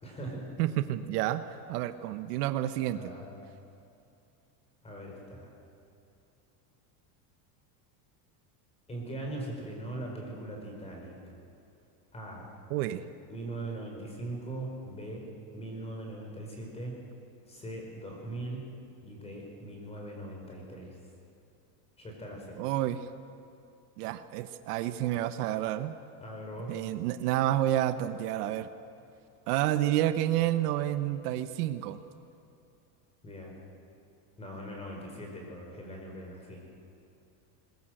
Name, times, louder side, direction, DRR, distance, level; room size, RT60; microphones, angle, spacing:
voice 1, 0.0-0.5 2.9-3.4 4.8-5.5 8.9-11.2 12.1-12.5 13.3-15.2 15.5-17.0 17.5-18.7 19.0-21.0 22.0-22.6 26.2-26.8 33.2-33.6 34.4-36.6, right 1 dB, 15° left, 0 dB, 4.6 m, -40 dB
voice 2, 0.6-1.4 1.7-3.0 12.7-13.0 22.6-23.1 24.0-25.9 26.7-28.7 29.5-32.0, right 13 dB, 75° right, 11 dB, 1.1 m, -29 dB
21.5 x 20.0 x 7.8 m, 2.6 s
cardioid pair, 170°, 47 cm